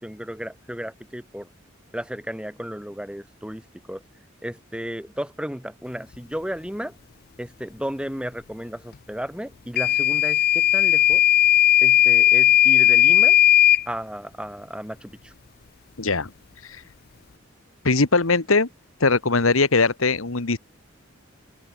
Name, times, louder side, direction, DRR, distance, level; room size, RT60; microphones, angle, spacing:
voice 1, 0.0-1.5 1.9-3.6 3.9-4.0 4.4-6.9 7.4-11.2 11.8-13.4 13.9-15.3, equal, 5° right, 6.2 m, -34 dB
Microwave oven / Alarm, 9.8-13.8, left 12 dB, 50° left, 0.5 m, -16 dB
voice 2, 16.0-16.3 16.6-16.8 17.8-18.7 19.0-20.6, left 3 dB, 85° left, 1.6 m, -20 dB
head